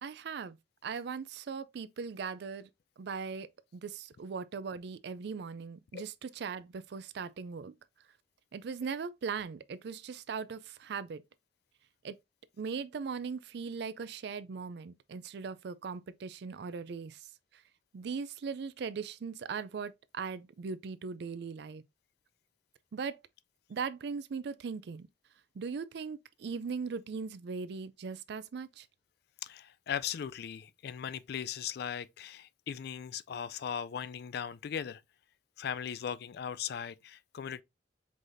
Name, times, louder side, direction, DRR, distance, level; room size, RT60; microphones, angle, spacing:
voice 1, 0.0-0.6 0.8-2.7 3.0-7.8 8.5-11.2 12.0-12.2 12.6-17.6 17.9-21.8 22.9-23.2 23.7-25.1 25.5-28.9, right 5 dB, 65° right, 0.4 m, -39 dB
voice 2, 29.4-35.0 35.6-37.6, left 8 dB, 60° left, 0.3 m, -38 dB
4.8 x 3.9 x 2.6 m
head